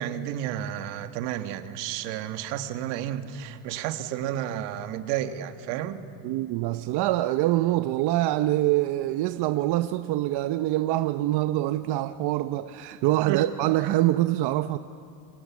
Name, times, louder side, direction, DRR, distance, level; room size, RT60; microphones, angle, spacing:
voice 1, 0.0-6.0 13.3-13.4, right 11 dB, 80° right, 1.7 m, -31 dB
voice 2, 6.2-14.8, right 15 dB, 60° right, 0.8 m, -25 dB
28.0 x 25.0 x 7.3 m
supercardioid pair, 105°, 43 cm